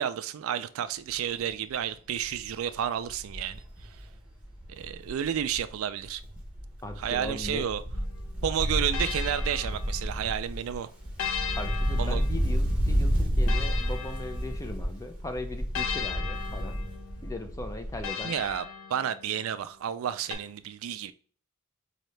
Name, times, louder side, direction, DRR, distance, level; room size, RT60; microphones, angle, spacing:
voice 1, 0.0-3.9 4.7-6.2 7.0-7.8 8.4-10.9 12.0-12.2 18.2-21.1, right 9 dB, 70° right, 0.3 m, -31 dB
Wind, 1.1-1.4 1.8-1.9 2.2-5.7 6.0-18.2 18.5-18.6, equal, 5° right, 1.0 m, -31 dB
voice 2, 6.8-7.7 11.5-16.8 17.2-18.3, left 1 dB, 15° left, 0.4 m, -39 dB
sound 1, 7.9-10.4 11.2-15.0 15.7-19.5 20.3-20.4, left 8 dB, 65° left, 0.5 m, -38 dB
4.1 x 2.8 x 3.2 m
head